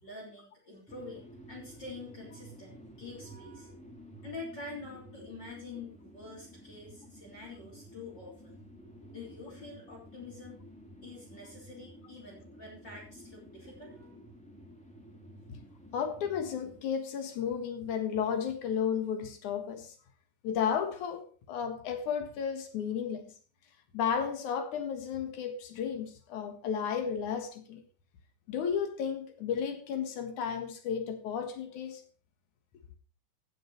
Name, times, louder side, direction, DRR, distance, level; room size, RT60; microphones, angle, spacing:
voice 1, 0.0-3.7 4.2-8.6 9.1-10.6 11.0-14.1, left 3 dB, 35° left, 3.9 m, -46 dB
sound 1, 0.9-16.8, equal, 5° left, 0.8 m, -52 dB
voice 2, 15.9-19.9 20.4-23.2 23.9-27.8 28.5-32.0, left 7 dB, 75° left, 3.0 m, -33 dB
15.5 x 6.6 x 4.5 m
omnidirectional pair, 3.6 m